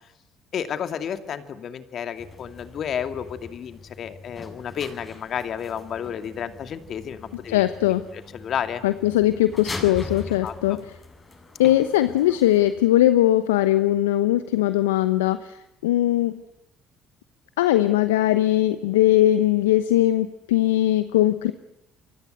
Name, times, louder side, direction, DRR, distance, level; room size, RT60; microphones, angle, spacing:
voice 1, 0.5-7.7 8.1-8.8 10.3-10.8, left 8 dB, 50° left, 9 dB, 2.4 m, -32 dB
sound 1, 2.2-12.8, left 3 dB, 30° left, 7.1 m, -41 dB
voice 2, 7.5-8.0 8.8-10.8 11.6-15.6 15.8-16.4 17.6-21.5, left 14 dB, 80° left, 12 dB, 0.9 m, -20 dB
29.0 x 24.0 x 8.0 m, 0.87 s
hypercardioid pair, 60°, 0 cm